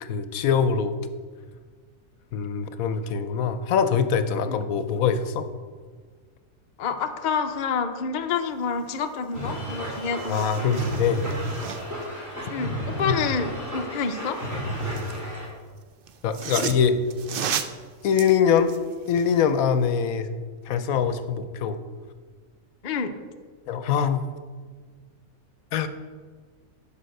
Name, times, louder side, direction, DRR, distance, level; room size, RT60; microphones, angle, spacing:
voice 1, 0.0-0.9 2.3-5.5 10.3-11.2 16.2-17.0 18.0-18.7 19.1-20.3 20.7-21.8 23.7-24.3 25.7-25.9, left 7 dB, 75° left, 11 dB, 1.1 m, -23 dB
voice 2, 6.8-10.9 12.5-14.4 22.8-23.1, left 5 dB, 50° left, 7 dB, 0.6 m, -28 dB
sound 1, 9.3-15.5, equal, 10° right, 2.7 m, -32 dB
sound 2, 9.4-9.5 9.8-12.1 14.2-15.3 16.1-19.4 19.8-19.9, right 8 dB, 65° right, 0.5 m, -35 dB
9.9 x 5.3 x 6.4 m, 1.5 s
omnidirectional pair, 1.5 m